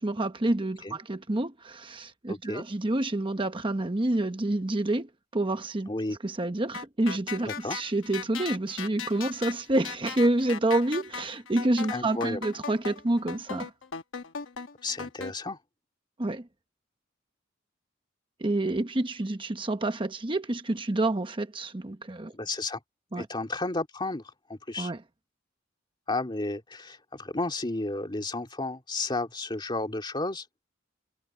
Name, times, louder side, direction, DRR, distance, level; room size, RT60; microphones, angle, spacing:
voice 1, 0.0-13.7 16.2-16.5 18.4-22.3 23.1-23.3 24.8-25.0, right 2 dB, 25° right, 0.9 m, -28 dB
voice 2, 2.3-2.6 5.9-6.2 7.5-7.8 11.9-12.4 14.8-15.6 22.3-22.8 23.2-24.9 26.1-30.5, left 2 dB, 25° left, 2.6 m, -32 dB
sound 1, 6.7-15.3, left 6 dB, 80° left, 1.2 m, -38 dB
head